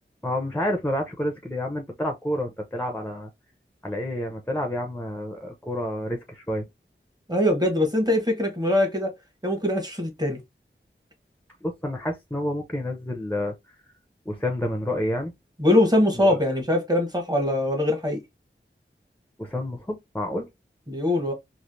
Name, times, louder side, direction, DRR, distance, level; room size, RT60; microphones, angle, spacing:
voice 1, 0.2-3.3 3.8-6.7 11.6-13.5 14.3-15.3 16.2-16.4 19.4-20.5, left 1 dB, 10° left, 0.7 m, -29 dB
voice 2, 7.3-9.1 9.4-10.4 15.6-18.2 20.9-21.3, left 1 dB, 20° right, 1.3 m, -22 dB
3.2 x 2.6 x 2.6 m
wide cardioid pair, 45°, 21 cm